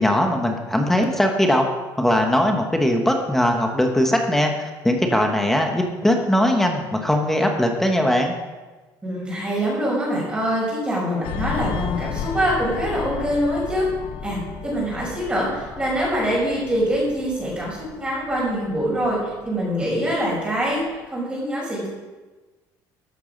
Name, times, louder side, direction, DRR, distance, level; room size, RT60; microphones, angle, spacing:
voice 1, 0.0-1.7 2.0-4.5 4.8-8.3, left 1 dB, 5° left, 2 dB, 1.2 m, -20 dB
voice 2, 9.0-13.9 14.2-21.9, equal, 15° right, -6 dB, 5.7 m, -24 dB
sound 1, 11.2-20.3 20.6-20.9, left 7 dB, 80° left, 1.3 m, -34 dB
13.5 x 11.5 x 5.3 m, 1.2 s
cardioid pair, 170°, 8 cm